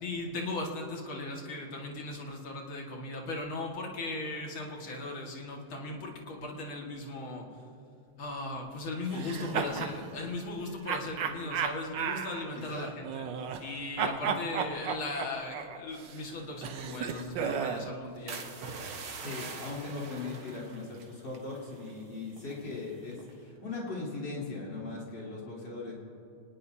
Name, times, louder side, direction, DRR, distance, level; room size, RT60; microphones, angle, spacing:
voice 1, 0.0-7.5 8.2-18.5, left 2 dB, 75° left, 0 dB, 2.8 m, -38 dB
voice 2, 9.1-9.8 12.7-13.0 19.2-25.9, left 3 dB, 55° left, -5 dB, 4.3 m, -39 dB
sound 1, 9.1-10.0 10.9-13.7 14.0-17.9, right 7 dB, 65° right, 1.4 m, -34 dB
sound 2, 18.3-22.0 22.3-22.7 23.1-23.4, right 4 dB, 85° right, 2.3 m, -43 dB
25.0 x 19.5 x 2.8 m, 2.7 s
omnidirectional pair, 2.3 m